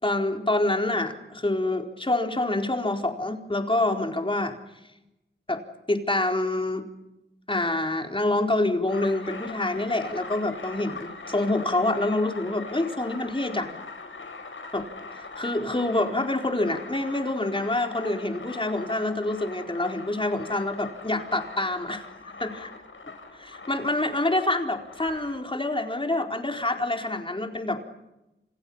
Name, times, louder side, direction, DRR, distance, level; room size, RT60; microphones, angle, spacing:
voice 1, 0.0-4.6 5.5-5.6 5.9-6.9 7.5-13.8 14.7-14.9 15.1-22.0 22.4-22.5 23.3-27.8, left 2 dB, 25° left, 3 dB, 4.3 m, -26 dB
sound 1, 8.9-25.4, left 3 dB, 75° left, 5.3 m, -41 dB
29.0 x 28.5 x 5.7 m, 0.93 s
wide cardioid pair, 90°, 21 cm